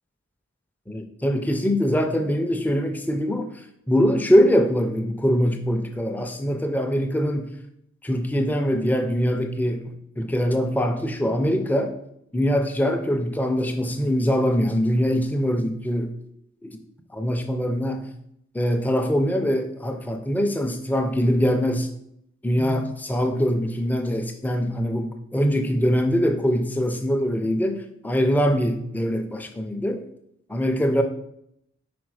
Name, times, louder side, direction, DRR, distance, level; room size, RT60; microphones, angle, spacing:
voice 1, 0.9-3.5 3.9-7.5 8.0-11.9 12.3-16.1 16.6-16.8 17.1-18.1 18.5-21.9 22.4-30.0 30.5-31.0, equal, 10° left, 6 dB, 0.4 m, -23 dB
5.0 x 4.4 x 4.7 m, 0.76 s
head